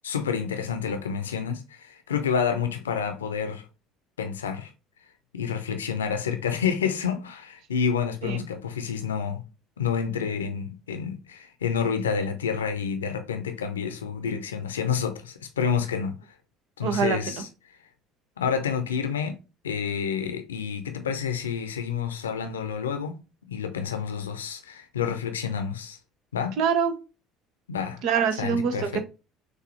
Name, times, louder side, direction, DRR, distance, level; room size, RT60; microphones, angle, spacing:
voice 1, 0.0-3.6 4.2-4.7 5.3-9.5 9.8-16.2 16.8-17.5 18.4-19.4 19.6-26.0 26.3-26.6 27.7-28.0 28.4-29.0, left 7 dB, 75° left, 0.6 m, -29 dB
voice 2, 16.8-17.2 26.6-26.9 28.0-29.0, right 7 dB, 60° right, 0.8 m, -24 dB
6.2 x 2.7 x 2.9 m
figure-of-eight pair, 60°, 0 cm